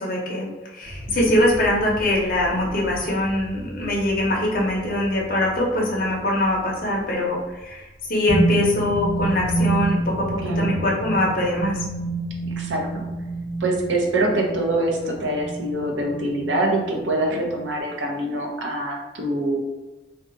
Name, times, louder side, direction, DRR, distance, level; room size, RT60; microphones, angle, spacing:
voice 1, 0.0-11.8, left 1 dB, 50° left, -3 dB, 0.6 m, -23 dB
sound 1, 0.8-6.1 8.3-17.8, right 2 dB, 25° right, 1.2 m, -29 dB
voice 2, 12.6-13.0 13.6-19.6, right 1 dB, 75° right, 1 dB, 0.6 m, -24 dB
2.7 x 2.3 x 2.5 m, 1.1 s
head